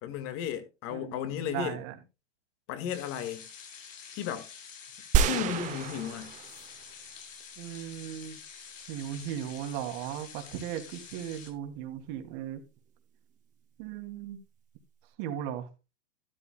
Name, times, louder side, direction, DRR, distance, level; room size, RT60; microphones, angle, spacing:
voice 1, 0.0-1.8 2.7-3.5 4.2-4.5 5.2-6.4, left 10 dB, 35° left, 1.9 m, -34 dB
voice 2, 0.9-1.9 7.6-8.4 8.9-12.6 13.8-14.4 15.2-15.7, right 10 dB, 45° right, 2.6 m, -37 dB
sound 1, 2.9-11.5, left 6 dB, 85° left, 4.7 m, -48 dB
sound 2, 5.1-6.9 7.4-7.5, right 7 dB, 20° right, 0.7 m, -28 dB
12.5 x 12.5 x 2.2 m
supercardioid pair, 145°, 38 cm